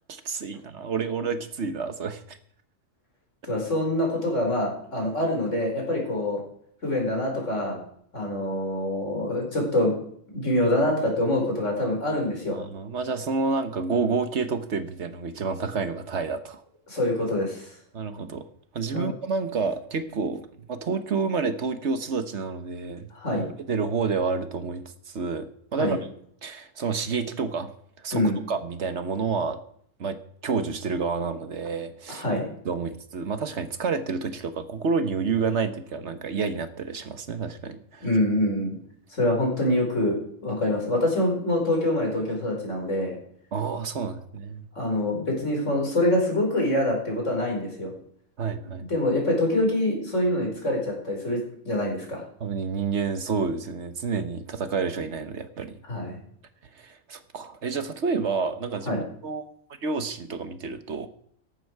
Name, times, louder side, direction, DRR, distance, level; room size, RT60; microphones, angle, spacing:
voice 1, 0.1-2.4 12.5-16.6 17.9-18.5 18.7-23.1 23.7-26.0 26.4-27.7 28.0-29.6 30.0-32.2 32.6-38.1 43.5-44.7 48.4-48.9 52.4-55.8 56.7-59.5 59.8-61.1, right 5 dB, 60° right, 11 dB, 1.4 m, -29 dB
voice 2, 3.4-6.4 6.8-7.8 8.1-9.9 10.3-12.6 16.9-17.7 18.9-19.1 23.1-23.5 25.8-26.0 28.1-28.3 32.1-32.5 38.0-38.8 39.1-40.2 40.4-43.2 44.7-47.9 48.9-52.2 55.9-56.2 58.9-59.0, left 1 dB, 70° left, 0 dB, 5.4 m, -25 dB
14.0 x 12.0 x 4.7 m, 0.64 s
omnidirectional pair, 1.3 m